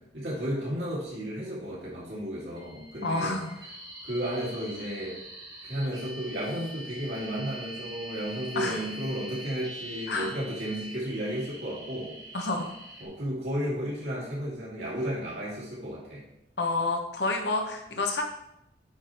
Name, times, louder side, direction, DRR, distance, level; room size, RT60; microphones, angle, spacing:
voice 1, 0.1-3.3 4.0-5.1 5.6-12.1 13.0-16.2, equal, 70° right, -8 dB, 3.0 m, -33 dB
sound 1, 2.6-13.1, right 1 dB, 25° right, 1.7 m, -44 dB
voice 2, 3.0-3.5 8.5-8.8 10.1-10.3 12.3-12.7 16.6-18.2, left 3 dB, 70° left, 3 dB, 1.2 m, -29 dB
9.4 x 3.4 x 4.5 m, 0.84 s
head